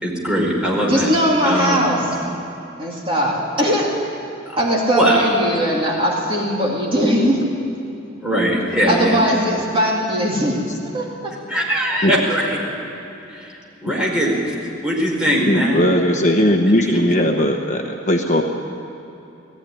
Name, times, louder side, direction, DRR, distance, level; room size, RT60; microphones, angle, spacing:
voice 1, 0.0-1.1 1.4-1.9 4.5-4.6 4.9-5.2 8.2-9.3 11.5-12.6 13.3-13.5 13.8-14.3 14.8-15.8 16.8-17.0, equal, 5° right, -4 dB, 4.8 m, -20 dB
voice 2, 0.9-2.1 2.8-4.0 4.6-7.4 8.9-10.6 10.9-11.3, equal, 30° right, -3 dB, 2.6 m, -19 dB
voice 3, 15.4-18.4, left 1 dB, 40° left, 2 dB, 1.2 m, -18 dB
19.0 x 15.0 x 10.0 m, 2.8 s
head